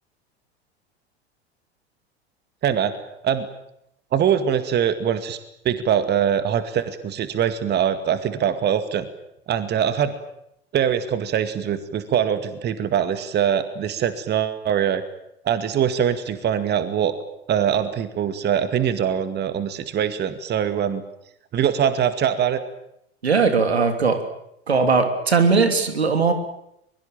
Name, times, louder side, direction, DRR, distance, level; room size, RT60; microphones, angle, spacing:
voice 1, 2.6-2.9 3.2-3.5 4.1-5.4 5.6-9.1 9.5-10.1 10.7-15.0 15.4-17.1 17.5-21.0 21.5-22.6, right 9 dB, 30° right, 11 dB, 2.2 m, -22 dB
voice 2, 23.2-24.2 24.7-26.3, right 4 dB, 80° right, 7 dB, 3.2 m, -19 dB
23.0 x 22.5 x 9.1 m, 0.78 s
figure-of-eight pair, 80°, 31 cm